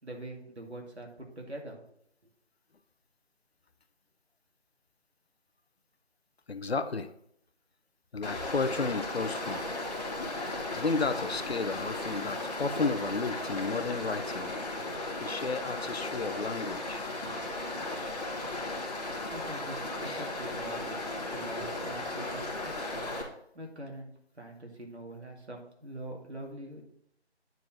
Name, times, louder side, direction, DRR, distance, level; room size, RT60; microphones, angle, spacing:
voice 1, 0.0-1.8 19.3-21.0 21.2-23.1 23.5-26.8, right 1 dB, 75° right, 1 dB, 2.4 m, -43 dB
voice 2, 6.5-7.1 8.1-9.7 10.5-14.5 15.2-17.0 20.0-20.3, left 4 dB, 65° left, 10 dB, 0.8 m, -33 dB
Stream, 8.2-23.2, left 2 dB, 35° left, 1.7 m, -36 dB
9.4 x 4.6 x 4.2 m, 0.72 s
figure-of-eight pair, 165°, 33 cm